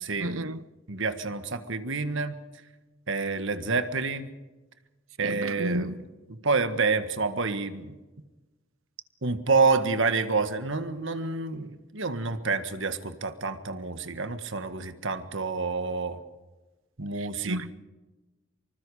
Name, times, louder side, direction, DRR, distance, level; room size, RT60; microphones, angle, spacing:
voice 1, 0.2-0.6 5.2-6.0 17.2-17.7, right 1 dB, 85° right, 1.0 m, -32 dB
voice 2, 0.9-2.4 3.1-4.3 5.2-5.9 6.3-7.9 9.2-16.2 17.0-17.6, right 4 dB, 65° right, 1.7 m, -28 dB
25.5 x 25.0 x 5.0 m
head